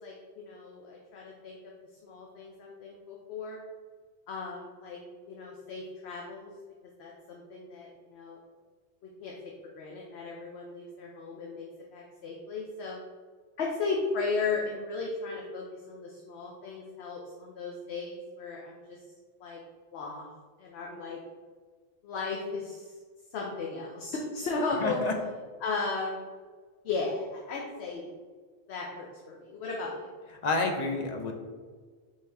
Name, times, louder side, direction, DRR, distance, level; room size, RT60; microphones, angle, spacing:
voice 1, 0.0-1.6 2.0-3.6 4.3-5.0 5.3-6.5 7.0-8.4 9.2-11.6 11.9-13.0 13.6-19.0 19.4-19.6 19.9-20.3 20.6-21.2 22.0-22.9 23.3-25.0 25.6-26.3 26.8-28.1 28.7-30.1, left 4 dB, 75° left, -2 dB, 0.9 m, -35 dB
voice 2, 24.8-25.2 30.4-31.3, left 3 dB, 55° left, 3 dB, 0.5 m, -29 dB
4.5 x 3.2 x 3.4 m, 1.5 s
omnidirectional pair, 1.1 m